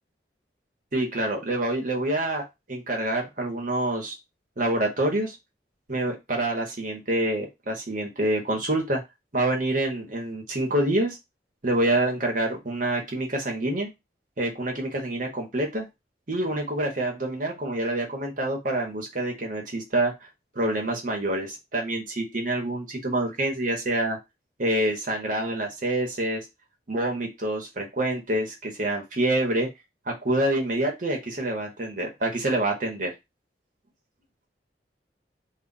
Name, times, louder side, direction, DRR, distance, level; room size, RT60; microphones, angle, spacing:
voice 1, 0.9-2.4 2.7-4.1 4.6-5.4 5.9-9.0 9.3-11.2 11.6-13.9 14.4-15.9 16.3-20.1 20.5-24.2 24.6-26.4 26.9-29.7 30.1-33.1, right 1 dB, 50° right, 2 dB, 1.0 m, -26 dB
2.3 x 2.3 x 3.9 m, 0.22 s
head